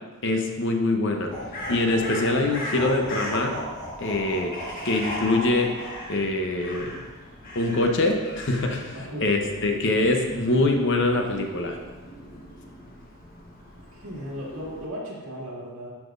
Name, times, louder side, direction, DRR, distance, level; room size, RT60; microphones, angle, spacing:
voice 1, 0.2-1.3 1.7-3.6 4.0-4.5 4.8-5.7 6.1-6.9 7.5-11.8, left 2 dB, 55° left, 3 dB, 0.9 m, -24 dB
Crow, 1.1-14.9, left 1 dB, 40° left, 1.4 m, -40 dB
sound 1, 1.3-6.0, equal, 20° left, 2.3 m, -36 dB
voice 2, 8.9-9.6 14.0-15.9, equal, 65° right, -5 dB, 2.4 m, -36 dB
12.0 x 5.9 x 2.6 m, 1.2 s
head